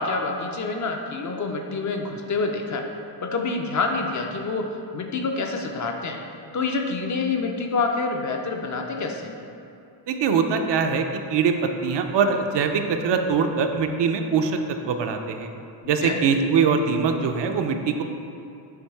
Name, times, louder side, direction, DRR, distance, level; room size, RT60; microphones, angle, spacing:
voice 1, 0.0-2.9 3.2-6.2 6.5-9.4 16.0-16.2, left 3 dB, 40° left, 3 dB, 0.5 m, -27 dB
voice 2, 10.1-11.0 11.3-15.5 15.9-18.0, right 5 dB, 65° right, 6 dB, 0.6 m, -22 dB
7.3 x 3.0 x 4.6 m, 2.7 s
wide cardioid pair, 135°, 46 cm